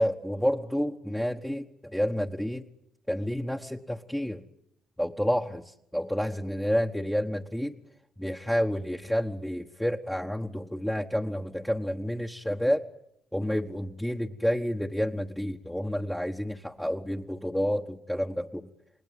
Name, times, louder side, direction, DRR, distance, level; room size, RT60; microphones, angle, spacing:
voice 1, 0.0-2.6 3.1-4.4 5.0-7.8 8.2-12.8 13.3-18.7, equal, 5° left, 0 dB, 1.2 m, -29 dB
28.0 x 20.0 x 9.3 m, 0.78 s
cardioid pair, 90°, 0 cm